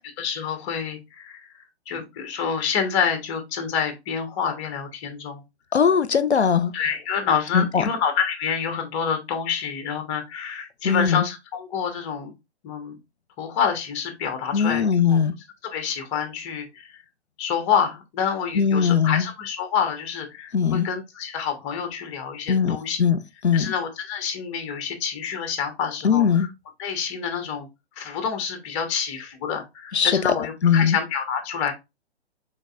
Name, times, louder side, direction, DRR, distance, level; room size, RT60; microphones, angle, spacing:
voice 1, 0.2-1.5 1.9-5.4 6.7-12.3 12.6-13.0 13.4-14.8 15.1-15.2 15.6-17.0 17.4-23.0 23.5-26.2 26.8-27.7 28.0-31.7, left 7 dB, 25° left, 1.1 m, -27 dB
voice 2, 5.7-6.7 7.5-7.8 10.8-11.3 14.5-15.3 18.5-19.3 20.5-20.9 22.5-23.7 26.0-26.5 29.9-31.0, left 6 dB, 90° left, 0.6 m, -20 dB
5.2 x 3.8 x 2.4 m
figure-of-eight pair, 125°, 32 cm